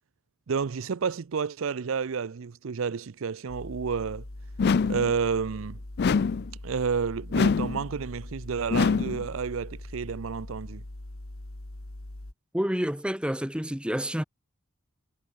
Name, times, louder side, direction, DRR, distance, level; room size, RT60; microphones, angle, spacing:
voice 1, 0.5-4.2 4.9-5.8 6.6-10.8, right 6 dB, 65° right, 0.5 m, -30 dB
sound 1, 3.5-12.3, left 1 dB, 80° left, 1.9 m, -42 dB
sound 2, 4.6-5.1 6.0-6.5 7.3-7.8 8.7-9.2, left 5 dB, 50° left, 0.4 m, -24 dB
voice 2, 12.5-14.2, equal, 5° right, 1.2 m, -28 dB
head